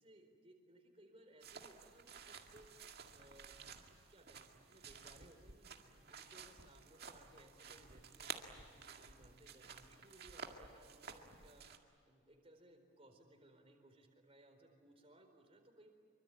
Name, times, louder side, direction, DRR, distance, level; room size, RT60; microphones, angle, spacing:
voice 1, 0.0-2.8 3.1-3.6 4.1-5.7 6.1-11.6 12.1-15.9, right 1 dB, 30° right, 4 dB, 4.2 m, -64 dB
sound 1, 1.4-11.8, right 5 dB, 50° right, 2.1 m, -53 dB
26.5 x 24.5 x 8.6 m, 2.4 s
head